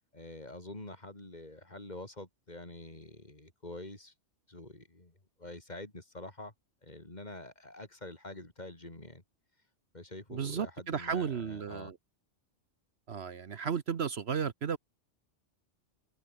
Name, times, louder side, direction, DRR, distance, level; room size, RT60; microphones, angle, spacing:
voice 1, 0.1-4.1 4.5-6.5 6.8-9.2 9.9-11.9, left 2 dB, 35° left, 3.8 m, -46 dB
voice 2, 10.3-12.0 13.1-14.8, right 7 dB, 60° right, 1.2 m, -34 dB
omnidirectional pair, 1.3 m